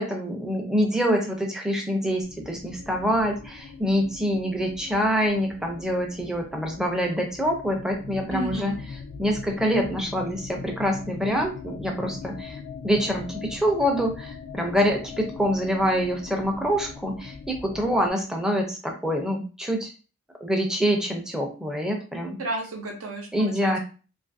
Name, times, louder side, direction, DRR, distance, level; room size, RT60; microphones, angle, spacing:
voice 1, 0.0-8.7 9.2-19.9 20.4-22.4 23.3-23.8, equal, 5° right, 1 dB, 0.4 m, -25 dB
sound 1, 2.2-18.1, left 5 dB, 80° left, 0.3 m, -41 dB
voice 2, 8.3-8.8 22.4-23.8, right 2 dB, 85° right, 2 dB, 0.7 m, -32 dB
2.6 x 2.4 x 2.5 m, 0.35 s
head